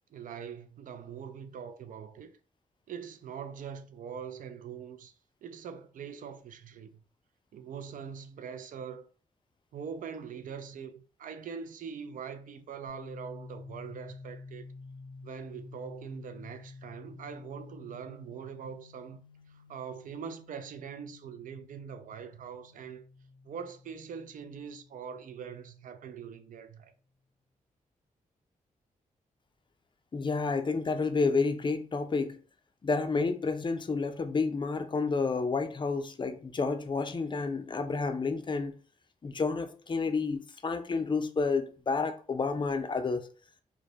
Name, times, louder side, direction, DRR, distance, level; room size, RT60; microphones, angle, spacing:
voice 1, 0.1-2.3 2.9-5.1 5.4-7.0 7.5-9.0 9.7-14.6 15.2-19.2 19.5-23.0 23.4-26.9, right 7 dB, 65° right, 0.4 m, -43 dB
sound 1, 12.9-26.5, left 3 dB, 85° left, 0.5 m, -51 dB
voice 2, 30.1-32.4 32.8-38.7 39.2-43.2, left 4 dB, 35° left, 0.4 m, -30 dB
2.1 x 2.1 x 2.7 m
cardioid pair, 55°, 15 cm